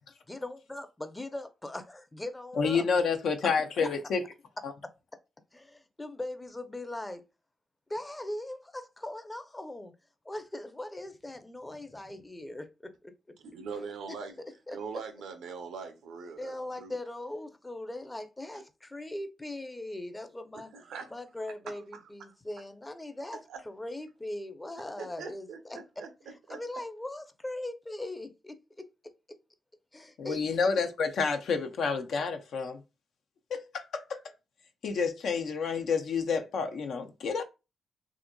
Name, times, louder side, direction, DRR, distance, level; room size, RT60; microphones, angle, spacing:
voice 1, 0.3-2.8 5.5-7.2 7.9-9.9 10.2-12.9 14.1-14.2 14.7-14.8 16.4-20.7 21.1-28.9 29.9-30.8, left 1 dB, 20° left, 0.5 m, -40 dB
voice 2, 2.6-4.3 4.6-4.7 30.2-32.8 33.5-34.2 34.8-37.4, left 5 dB, 75° left, 0.4 m, -29 dB
voice 3, 13.4-14.3 14.7-16.9 18.5-18.6 20.5-21.1 21.7-22.0 23.5-23.6 25.0-26.1 26.5-26.6, right 5 dB, 80° right, 0.5 m, -42 dB
2.7 x 2.4 x 2.2 m
supercardioid pair, 55°, 0 cm